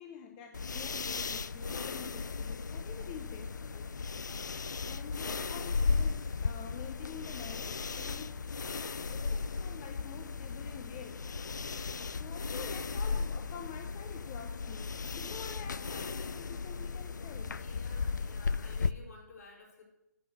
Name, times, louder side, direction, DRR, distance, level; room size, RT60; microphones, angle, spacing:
voice 1, 0.0-3.9 4.5-11.2 12.2-17.6, left 8 dB, 25° left, 4 dB, 0.8 m, -48 dB
sound 1, 0.5-18.9, left 4 dB, 80° left, 0.4 m, -36 dB
voice 2, 17.6-19.8, left 4 dB, 60° left, -3 dB, 4.2 m, -53 dB
9.3 x 6.9 x 6.7 m, 0.93 s
figure-of-eight pair, 140°, 10 cm